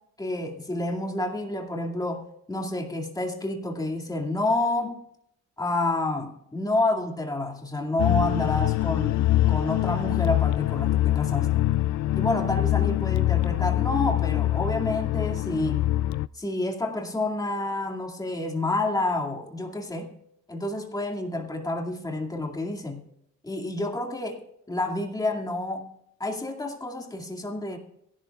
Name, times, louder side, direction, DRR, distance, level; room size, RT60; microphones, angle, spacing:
voice 1, 0.2-5.0 5.6-11.6 12.1-15.8 16.4-20.1 20.5-23.0 23.4-24.4 24.7-25.9 26.2-27.8, left 2 dB, 10° left, 2 dB, 2.2 m, -29 dB
sound 1, 8.0-16.3, left 14 dB, 70° left, 0.5 m, -24 dB
23.0 x 11.5 x 2.4 m, 0.74 s
cardioid pair, 90°, 30 cm